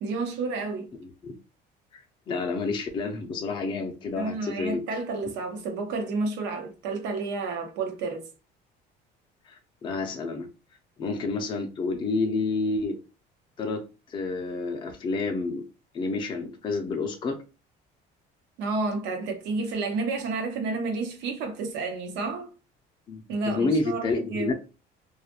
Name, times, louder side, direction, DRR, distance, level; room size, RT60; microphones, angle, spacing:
voice 1, 0.0-0.9 4.2-8.3 18.6-22.5 23.3-24.5, right 3 dB, 80° right, 0.8 m, -30 dB
voice 2, 1.0-1.4 1.9-4.8 9.5-10.5 11.0-13.0 13.6-15.6 15.9-17.4 23.1-24.5, left 3 dB, 25° left, 0.4 m, -29 dB
2.3 x 2.1 x 2.9 m
cardioid pair, 150°, 18 cm